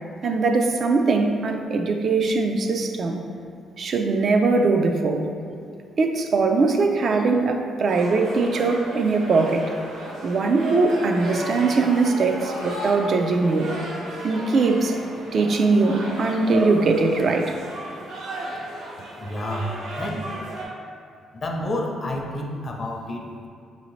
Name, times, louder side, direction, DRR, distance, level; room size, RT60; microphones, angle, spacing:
voice 1, 0.2-3.2 3.8-5.3 6.0-9.7 10.2-13.7 14.2-15.0 15.3-17.5 20.0-20.1, right 3 dB, 55° right, 4 dB, 0.3 m, -21 dB
sound 1, 7.9-20.6, right 1 dB, 85° right, 0.8 m, -34 dB
voice 2, 19.2-20.2 21.4-23.5, left 1 dB, 40° left, 1 dB, 0.5 m, -29 dB
4.8 x 2.7 x 3.1 m, 2.3 s
cardioid pair, 90°, 0 cm